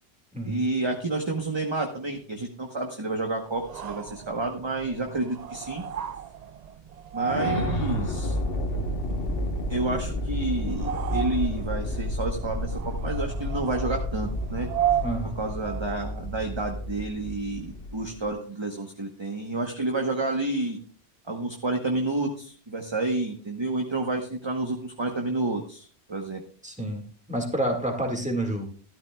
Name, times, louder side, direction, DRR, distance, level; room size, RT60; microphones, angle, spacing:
voice 1, 0.4-5.8 7.1-8.4 9.7-14.7 15.4-20.8 21.3-26.4, right 2 dB, 25° right, 3 dB, 1.0 m, -30 dB
sound 1, 3.5-16.1, right 9 dB, 50° right, 0.5 m, -35 dB
sound 2, 7.2-18.3, left 1 dB, 60° left, 1.4 m, -31 dB
voice 2, 15.0-15.4 26.6-27.0 27.3-28.7, right 1 dB, 5° right, 2 dB, 1.8 m, -28 dB
13.0 x 12.0 x 2.3 m, 0.43 s
omnidirectional pair, 1.1 m